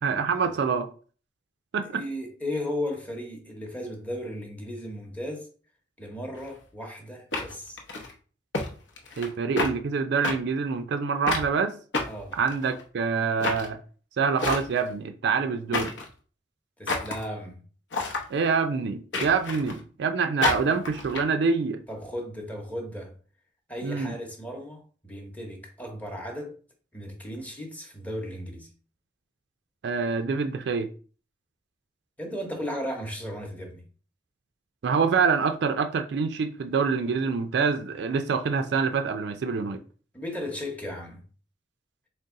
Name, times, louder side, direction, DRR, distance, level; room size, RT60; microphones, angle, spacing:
voice 1, 0.0-0.9 1.7-2.0 9.2-11.8 12.4-13.8 14.2-15.9 18.3-21.8 23.8-24.2 29.8-30.9 34.8-39.8, right 5 dB, 65° right, 0.4 m, -26 dB
voice 2, 1.9-5.5 6.0-7.8 12.1-12.4 16.8-17.6 21.9-23.1 23.7-26.6 26.9-28.7 32.2-33.8 40.1-41.2, left 1 dB, 10° left, 0.8 m, -35 dB
sound 1, 6.4-6.5 7.3-8.1 8.5-8.7 9.0-9.3 9.6-9.7 10.2-10.4 11.3-11.5 11.9-12.8 13.4-13.7 14.4-14.9 15.7-16.1 16.9-17.2 17.9-18.3 19.1-19.8 20.4-21.2, left 3 dB, 75° left, 0.8 m, -29 dB
4.0 x 2.1 x 3.6 m
head